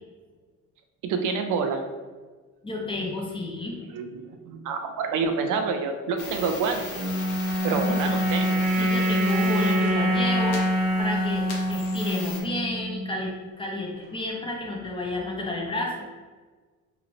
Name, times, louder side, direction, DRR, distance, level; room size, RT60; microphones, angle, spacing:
voice 1, 1.0-1.8 2.9-3.0 3.9-6.8 7.6-8.7, right 5 dB, 80° right, 6 dB, 0.5 m, -28 dB
voice 2, 2.6-3.8 4.6-4.7 7.7-8.3 8.7-16.1, left 2 dB, 15° left, -1 dB, 0.7 m, -31 dB
sound 1, 6.2-12.4, left 4 dB, 85° left, 0.8 m, -39 dB
sound 2, 6.9-13.3, equal, 30° right, 1.1 m, -25 dB
3.0 x 2.5 x 3.0 m, 1.4 s
cardioid pair, 90°, 30 cm